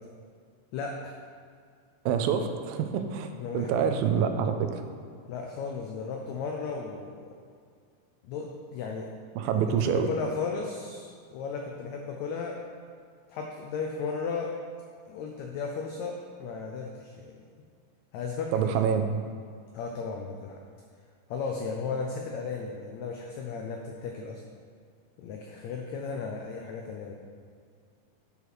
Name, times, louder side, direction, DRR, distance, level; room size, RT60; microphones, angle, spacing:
voice 1, 0.7-1.1 3.4-3.9 5.2-7.3 8.2-9.1 9.5-12.6 13.3-14.5 15.1-17.3 18.1-18.8 19.7-20.6 21.3-24.4 25.2-27.1, left 5 dB, 90° left, 1 dB, 1.6 m, -35 dB
voice 2, 2.1-3.3 3.5-4.8 9.4-10.1 18.5-19.1, right 7 dB, 90° right, 7 dB, 2.4 m, -26 dB
8.3 x 4.8 x 6.0 m, 2.2 s
omnidirectional pair, 4.0 m